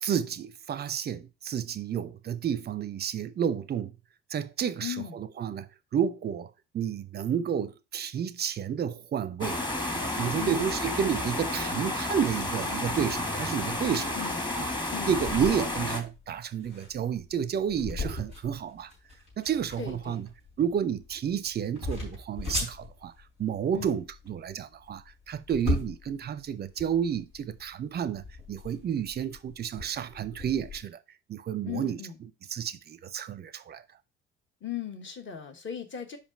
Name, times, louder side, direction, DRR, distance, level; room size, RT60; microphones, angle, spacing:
voice 1, 0.0-3.9 4.3-5.7 5.9-9.6 9.9-14.1 14.5-14.7 15.1-18.9 19.4-20.3 20.6-23.1 23.4-28.2 28.5-31.0 31.3-32.0 32.5-33.8, right 8 dB, 30° right, 0.6 m, -31 dB
voice 2, 4.8-5.2 10.3-10.7 14.1-14.4 14.9-15.1 19.8-20.3 23.7-24.0 31.6-32.2 34.6-36.2, left 9 dB, 35° left, 1.4 m, -37 dB
sound 1, 9.4-16.0, left 1 dB, 15° left, 1.4 m, -31 dB
sound 2, 15.1-30.8, left 2 dB, 75° left, 3.5 m, -38 dB
5.3 x 5.0 x 5.0 m
figure-of-eight pair, 50°, 32 cm